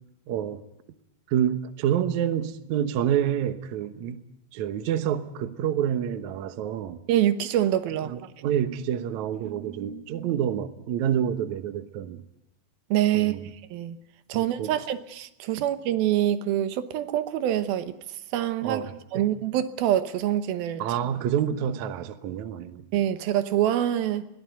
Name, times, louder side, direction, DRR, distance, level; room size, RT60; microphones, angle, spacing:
voice 1, 0.3-0.6 1.3-4.2 4.5-7.0 8.0-12.2 13.1-13.4 14.3-14.7 18.6-19.3 20.8-22.9, right 9 dB, 65° right, 2.2 m, -28 dB
voice 2, 7.1-8.2 12.9-14.0 14.3-18.8 19.1-20.8 22.9-24.2, right 12 dB, 80° right, 2.8 m, -25 dB
22.5 x 17.0 x 9.3 m
omnidirectional pair, 4.3 m